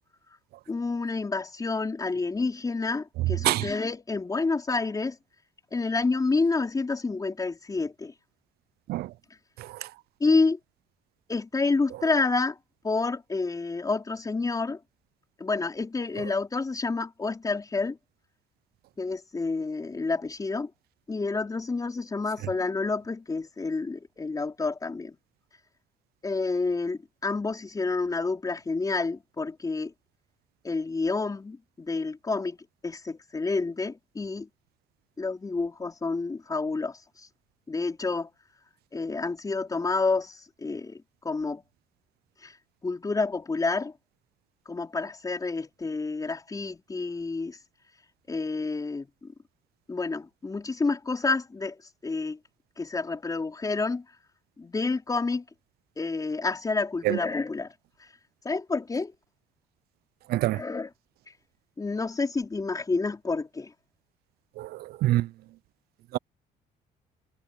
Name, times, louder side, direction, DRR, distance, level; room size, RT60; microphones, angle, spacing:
voice 1, 0.7-5.2 5.7-8.1 10.2-10.6 11.3-12.6 12.8-14.8 15.4-18.0 19.0-20.7 21.1-25.2 26.2-29.9 30.6-32.6 32.8-34.5 35.2-37.3 37.7-38.3 38.9-41.6 42.4-42.5 42.8-43.9 44.7-47.6 48.3-49.3 49.9-51.8 52.0-52.4 52.8-54.0 54.6-55.4 56.0-57.7 58.4-59.1 60.5-60.9 61.8-63.7, left 3 dB, 20° left, 4.6 m, -29 dB
voice 2, 3.4-3.6 8.9-9.1 57.1-57.2 60.3-60.6 64.6-64.7 65.0-65.3 66.1-66.2, right 16 dB, 70° right, 0.4 m, -24 dB
cardioid pair, 110°, 17 cm